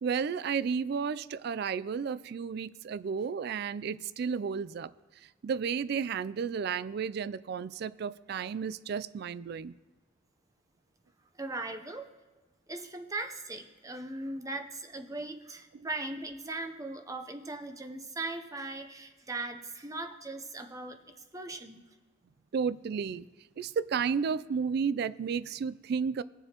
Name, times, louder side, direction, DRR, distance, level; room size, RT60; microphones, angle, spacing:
voice 1, 0.0-4.9 5.4-9.7 15.7-15.9 22.5-23.3 23.6-26.2, right 6 dB, 55° right, 18 dB, 0.3 m, -32 dB
voice 2, 11.4-12.1 12.7-21.0 21.3-21.8, right 2 dB, 15° right, 6 dB, 0.6 m, -39 dB
20.5 x 6.8 x 2.9 m, 1.2 s
head